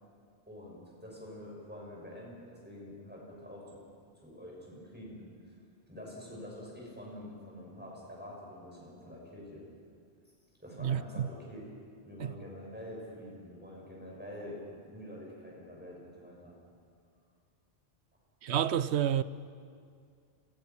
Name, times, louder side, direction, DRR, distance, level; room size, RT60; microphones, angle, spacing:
voice 1, 0.5-3.8 4.2-5.6 5.9-9.7 10.6-11.7 12.0-16.6, left 1 dB, 10° right, 6.8 m, -46 dB
voice 2, 10.8-11.3 12.2-12.3 18.4-19.2, right 9 dB, 80° right, 1.0 m, -29 dB
29.0 x 20.5 x 6.0 m
omnidirectional pair, 1.1 m